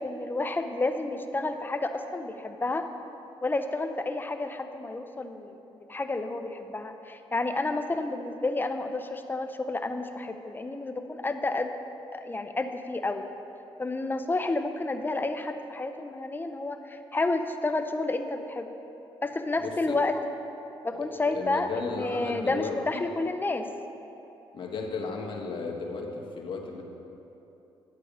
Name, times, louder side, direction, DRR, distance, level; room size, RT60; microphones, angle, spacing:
voice 1, 0.0-2.9 3.4-5.5 5.9-11.7 12.1-13.2 13.8-18.7 19.2-20.2 20.8-23.7, left 2 dB, 20° left, 7 dB, 0.8 m, -30 dB
voice 2, 19.6-20.0 20.9-23.0 24.5-26.8, left 4 dB, 55° left, 1 dB, 1.6 m, -35 dB
11.0 x 8.6 x 5.1 m, 3.0 s
cardioid pair, 85°, 10 cm